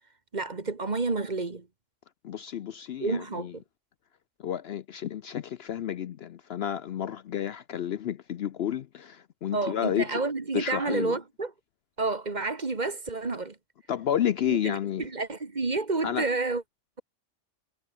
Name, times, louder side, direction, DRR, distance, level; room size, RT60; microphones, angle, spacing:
voice 1, 0.3-1.7 3.0-3.5 9.5-11.5 12.0-13.5 14.5-16.6, right 3 dB, 35° right, 1.6 m, -30 dB
voice 2, 2.2-3.5 4.4-10.2 10.5-11.2 13.9-15.1 16.0-16.3, left 10 dB, 60° left, 0.8 m, -31 dB
omnidirectional pair, 1.3 m